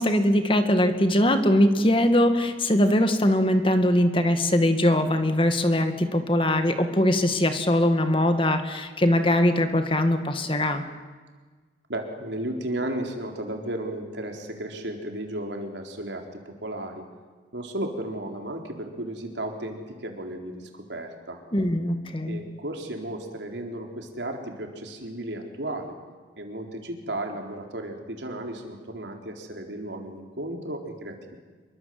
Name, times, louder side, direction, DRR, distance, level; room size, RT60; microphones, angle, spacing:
voice 1, 0.0-10.8 21.5-22.4, left 1 dB, 30° left, 7 dB, 2.1 m, -21 dB
voice 2, 11.9-17.0 17.5-21.4 22.3-26.0 26.4-31.3, right 1 dB, 90° right, 3 dB, 4.2 m, -34 dB
26.5 x 23.5 x 7.9 m, 1.4 s
head